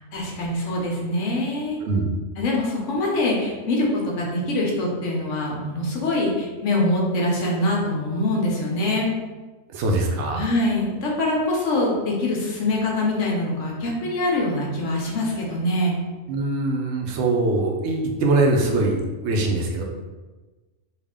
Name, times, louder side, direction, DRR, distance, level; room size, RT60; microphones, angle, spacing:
voice 1, 0.0-1.8 2.4-3.9 4.1-9.1 10.3-16.0, left 1 dB, 75° left, -2 dB, 1.1 m, -24 dB
voice 2, 9.7-10.4 16.3-19.0 19.2-19.8, right 2 dB, 70° right, 2 dB, 0.9 m, -22 dB
3.4 x 2.4 x 3.5 m, 1.2 s
omnidirectional pair, 1.3 m